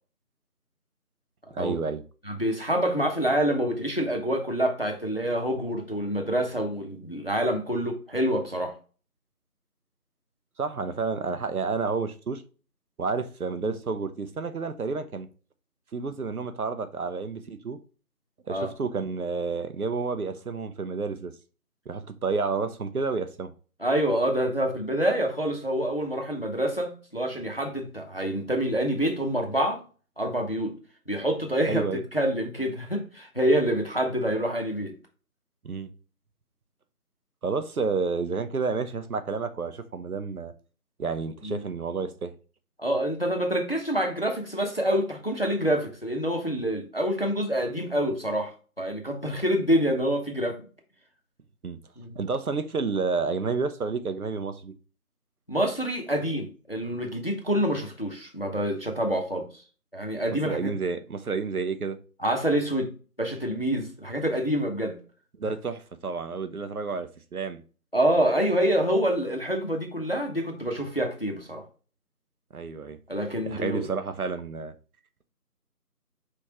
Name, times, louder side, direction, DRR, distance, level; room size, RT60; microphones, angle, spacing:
voice 1, 1.5-2.0 10.6-12.4 13.0-15.3 15.9-17.8 18.5-21.3 21.9-23.5 31.7-32.0 35.6-35.9 37.4-40.5 41.0-42.3 51.6-51.8 52.2-54.7 60.4-62.0 65.4-67.6 72.5-73.0 73.5-74.7, right 4 dB, 70° right, 0.6 m, -30 dB
voice 2, 2.3-8.7 18.5-18.7 23.8-29.8 30.2-30.7 31.1-31.8 32.1-34.9 41.4-41.6 42.8-50.6 52.0-52.2 55.5-59.5 59.9-60.7 62.2-62.9 63.2-65.0 67.9-71.6 73.1-73.9, equal, 40° left, 0.7 m, -27 dB
4.5 x 3.4 x 2.9 m
figure-of-eight pair, 180°, 46 cm